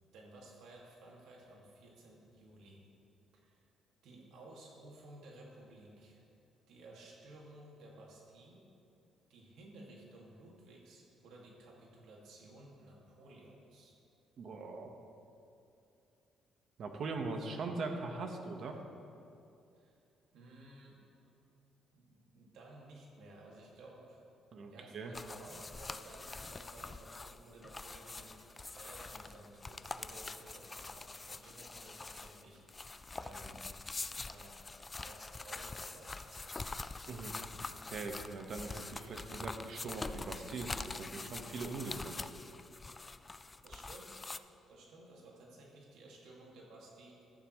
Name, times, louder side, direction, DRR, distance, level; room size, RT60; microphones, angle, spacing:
voice 1, 0.1-2.9 3.3-3.6 4.0-6.2 6.7-8.7 9.3-14.0 19.7-20.0 20.3-21.0 21.9-24.3 24.7-33.8 34.3-34.6 35.0-36.9 43.6-44.2 44.7-47.2, right 2 dB, 75° right, -3 dB, 2.2 m, -55 dB
voice 2, 14.4-14.9 16.8-18.8 24.5-25.1 37.1-37.3 37.9-42.2, right 3 dB, 55° right, 4 dB, 1.3 m, -41 dB
sound 1, 25.1-44.4, left 3 dB, 20° left, 0.3 m, -45 dB
14.5 x 12.5 x 3.2 m, 2.6 s
cardioid pair, 125°, 0 cm